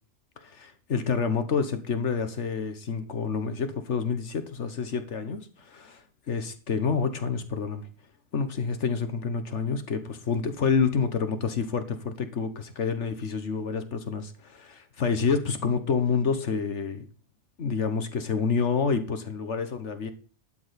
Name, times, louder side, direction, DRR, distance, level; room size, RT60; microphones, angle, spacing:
voice 1, 0.4-7.9 8.3-17.1 17.6-20.1, left 5 dB, 80° left, 10 dB, 1.5 m, -28 dB
12.0 x 7.0 x 5.1 m, 0.39 s
omnidirectional pair, 1.2 m